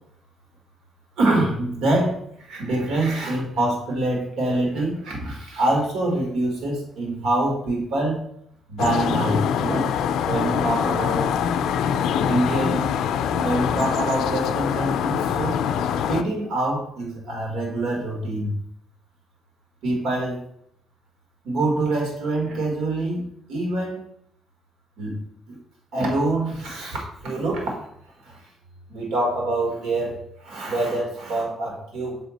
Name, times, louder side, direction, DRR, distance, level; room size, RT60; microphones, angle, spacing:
voice 1, 1.2-8.2 8.7-9.9 10.2-11.3 12.3-12.9 13.4-15.6 16.1-18.6 19.8-20.4 21.4-24.0 25.0-25.2 25.5-25.6 25.9-28.4 28.9-32.2, right 2 dB, 85° right, 0 dB, 1.8 m, -25 dB
sound 1, 8.8-16.2, left 8 dB, 85° left, 0.4 m, -24 dB
6.7 x 4.0 x 4.1 m, 0.71 s
cardioid pair, 125°, 0 cm